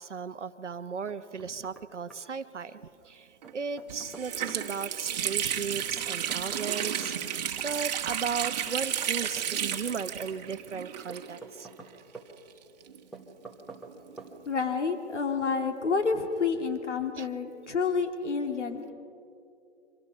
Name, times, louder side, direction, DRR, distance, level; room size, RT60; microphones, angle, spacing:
voice 1, 0.0-11.7 17.2-17.3, right 6 dB, 85° right, 11 dB, 1.2 m, -36 dB
Knock, 1.1-1.9 2.1-2.2 3.4-4.7 6.0-7.2 8.7-9.9 11.1-12.3 13.1-13.9 14.2-14.3, right 3 dB, ahead, 1.0 m, -47 dB
Water tap faucet, 3.4-3.5 3.9-11.6 11.9-12.0 12.8-14.4, right 9 dB, 35° right, 1.6 m, -33 dB
voice 2, 14.5-18.9, left 5 dB, 85° left, 6 dB, 2.6 m, -29 dB
30.0 x 25.5 x 5.6 m, 2.6 s
hypercardioid pair, 155°, 35 cm